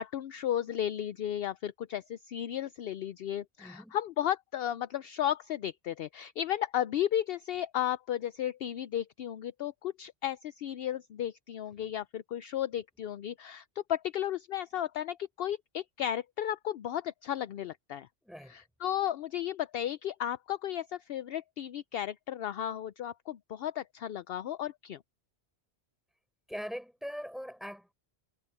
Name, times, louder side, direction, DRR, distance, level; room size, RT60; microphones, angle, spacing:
voice 1, 0.0-13.6 13.9-18.1 18.5-25.0, left 11 dB, 65° left, 0.7 m, -34 dB
voice 2, 3.6-4.0 18.2-18.6 26.5-27.9, equal, ahead, 6.8 m, -41 dB
omnidirectional pair, 1.1 m